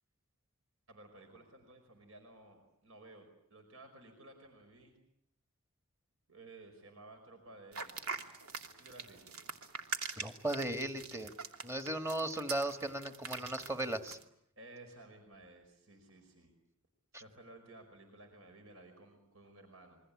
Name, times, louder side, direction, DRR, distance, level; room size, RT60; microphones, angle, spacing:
voice 1, 0.9-5.0 6.3-8.2 8.6-9.4 14.6-16.5 17.1-20.0, right 2 dB, 70° right, 5 dB, 5.2 m, -56 dB
sound 1, 7.7-14.2, right 4 dB, 85° right, 2.7 m, -43 dB
voice 2, 10.2-11.3 11.6-14.2 17.1-17.2, right 1 dB, 15° right, 7 dB, 1.7 m, -37 dB
28.5 x 23.5 x 8.6 m, 0.72 s
head